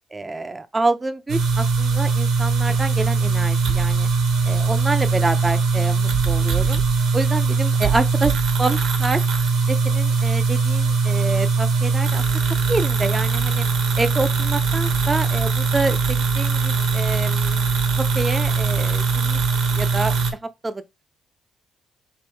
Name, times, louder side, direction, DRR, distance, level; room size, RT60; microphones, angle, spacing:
voice 1, 0.1-4.1 4.4-6.8 7.1-8.3 8.6-9.2 9.7-12.2 12.7-13.6 14.0-17.7 18.0-19.4 19.7-20.1 20.6-20.8, right 2 dB, 20° right, 0.4 m, -27 dB
sound 1, 1.3-20.3, right 4 dB, 80° right, 1.1 m, -21 dB
3.5 x 2.9 x 4.5 m
cardioid pair, 90°, 0 cm